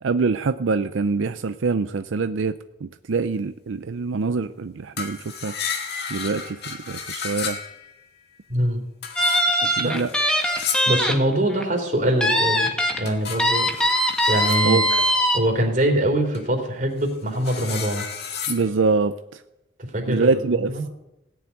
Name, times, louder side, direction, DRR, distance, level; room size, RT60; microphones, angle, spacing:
voice 1, 0.0-5.5 6.1-7.6 9.6-10.1 14.6-14.8 18.5-19.4 20.1-20.9, right 4 dB, 90° right, 10 dB, 0.5 m, -24 dB
sound 1, 5.0-8.0 9.0-11.1 13.0-14.7 16.3-16.4 17.0-18.7, left 6 dB, 60° left, 2.0 m, -33 dB
voice 2, 8.5-8.8 9.8-10.0 10.9-12.7 13.0-13.7 14.3-15.0 15.3-18.1 19.9-20.8, right 1 dB, 45° right, 3 dB, 3.2 m, -23 dB
sound 2, 9.2-11.1 11.5-11.6 12.2-13.0 13.4-15.4, equal, 5° left, 1.6 m, -21 dB
17.0 x 7.1 x 9.5 m, 0.92 s
head